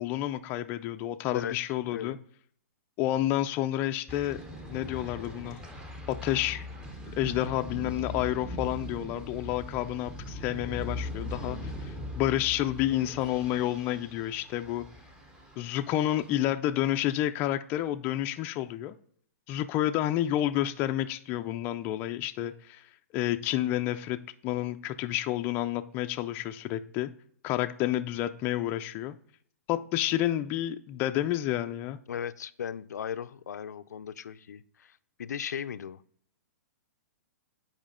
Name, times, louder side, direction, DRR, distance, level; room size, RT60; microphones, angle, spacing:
voice 1, 0.0-2.2 3.0-4.4 4.7-5.6 6.1-6.7 7.2-14.9 15.6-18.9 19.5-22.8 23.1-27.1 27.4-29.1 29.7-32.0, left 13 dB, 25° left, 8 dB, 0.3 m, -30 dB
voice 2, 1.8-2.2 32.1-36.0, left 8 dB, 90° left, 12 dB, 0.4 m, -37 dB
sound 1, 4.1-16.3, left 1 dB, 10° right, 0.7 m, -40 dB
7.4 x 5.0 x 3.6 m, 0.62 s
hypercardioid pair, 150°, 9 cm